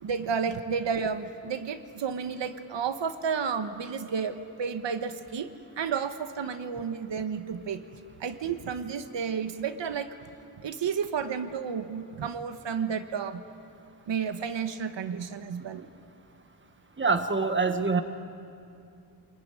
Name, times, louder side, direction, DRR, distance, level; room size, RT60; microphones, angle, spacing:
voice 1, 0.0-7.8 8.2-10.1 10.6-13.4 14.1-15.8, right 6 dB, 85° right, 8 dB, 1.4 m, -31 dB
voice 2, 17.0-18.0, right 4 dB, 25° right, 7 dB, 1.5 m, -25 dB
27.5 x 21.5 x 9.8 m, 2.6 s
wide cardioid pair, 135°, 43 cm